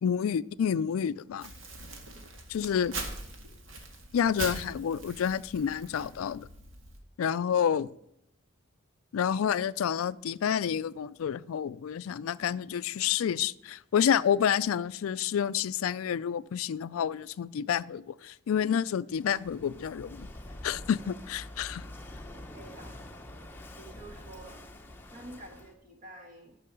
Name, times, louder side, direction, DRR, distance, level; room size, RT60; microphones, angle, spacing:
voice 1, 0.0-1.5 2.5-2.9 4.1-6.5 7.2-8.0 9.1-20.3 20.6-21.9, left 8 dB, 85° left, 0.3 m, -29 dB
Crumpling crinkling, 1.4-7.0, right 2 dB, 70° right, 1.8 m, -42 dB
Walk footsteps / Wind / Waves surf, 19.1-25.7, left 1 dB, 10° left, 0.8 m, -46 dB
voice 2, 22.5-23.0 23.8-24.6 25.1-26.6, right 1 dB, 40° right, 1.8 m, -49 dB
12.0 x 5.7 x 6.9 m
head